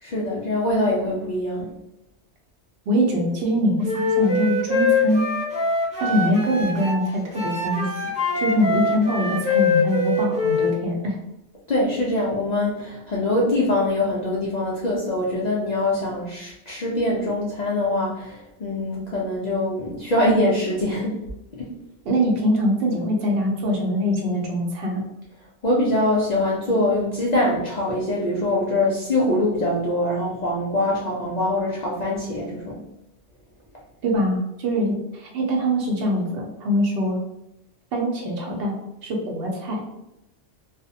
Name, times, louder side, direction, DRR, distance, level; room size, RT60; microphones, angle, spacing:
voice 1, 0.0-1.7 11.7-21.2 21.5-21.7 25.6-32.8, left 1 dB, 60° left, -5 dB, 0.4 m, -23 dB
voice 2, 2.9-5.3 6.0-7.9 8.3-11.2 22.0-25.0 34.0-37.2 37.9-39.8, equal, 60° right, 0 dB, 0.8 m, -23 dB
Wind instrument woodwind instrument, 3.8-7.0 7.3-10.7, left 3 dB, 10° right, 0.4 m, -23 dB
2.4 x 2.0 x 2.7 m, 0.89 s
omnidirectional pair, 1.2 m